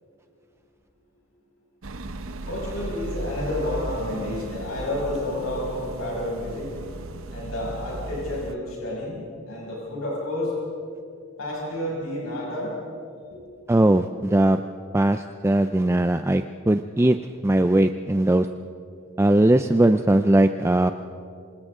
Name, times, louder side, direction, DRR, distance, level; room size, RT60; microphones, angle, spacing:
sound 1, 1.8-8.5, right 2 dB, 65° right, 0.9 m, -36 dB
voice 1, 2.5-6.7 7.3-10.5 11.4-12.7 13.3-13.4, left 1 dB, 70° left, -5 dB, 6.1 m, -30 dB
voice 2, 13.7-14.6 14.9-17.2 17.4-18.5 19.2-20.9, right 1 dB, 10° right, 8 dB, 0.4 m, -19 dB
27.5 x 26.0 x 3.7 m, 2.5 s
head